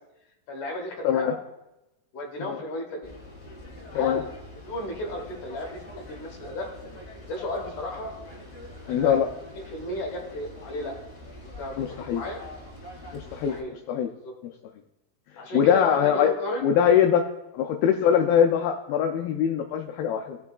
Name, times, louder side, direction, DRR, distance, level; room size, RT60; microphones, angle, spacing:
voice 1, 0.5-1.4 2.1-3.1 3.9-4.3 4.7-6.7 7.3-8.1 8.8-9.1 9.5-11.0 11.4-11.8 12.1-12.4 13.2-13.8 14.2-14.3 15.4-16.7, left 1 dB, 65° left, 1 dB, 2.3 m, -34 dB
voice 2, 1.0-1.4 2.4-2.6 3.9-4.2 8.9-9.3 11.8-12.2 13.1-14.1 15.5-16.3 16.6-17.3 17.5-20.4, left 8 dB, 80° left, 3 dB, 2.3 m, -22 dB
sound 1, 3.0-13.6, left 1 dB, 25° left, 1.6 m, -44 dB
16.5 x 5.9 x 2.3 m, 0.94 s
omnidirectional pair, 4.6 m